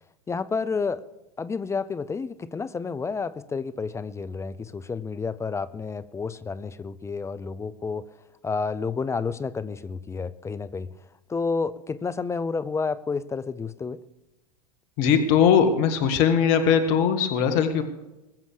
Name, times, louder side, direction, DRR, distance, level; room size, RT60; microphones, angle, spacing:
voice 1, 0.3-1.0 1.4-8.0 8.4-10.9 11.3-14.0, left 4 dB, 15° left, 15 dB, 0.6 m, -30 dB
voice 2, 15.0-17.8, left 7 dB, 50° left, 8 dB, 1.9 m, -20 dB
21.0 x 7.5 x 6.7 m, 0.97 s
hypercardioid pair, 100°, 21 cm